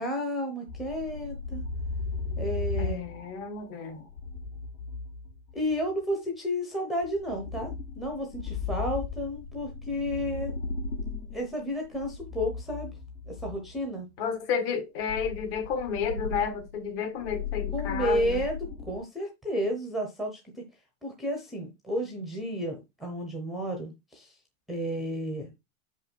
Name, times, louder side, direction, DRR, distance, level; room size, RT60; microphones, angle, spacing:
voice 1, 0.0-1.6 2.4-3.0 5.5-10.5 11.3-13.0 13.3-14.1 17.7-20.6 21.0-24.3 24.7-25.5, equal, ahead, 0.7 m, -32 dB
sound 1, 0.7-5.9 7.0-13.8 15.0-19.0, left 4 dB, 80° left, 2.8 m, -36 dB
voice 2, 2.8-4.0 14.2-18.4, left 6 dB, 45° left, 1.7 m, -31 dB
6.3 x 5.5 x 4.4 m
supercardioid pair, 175°, 40 cm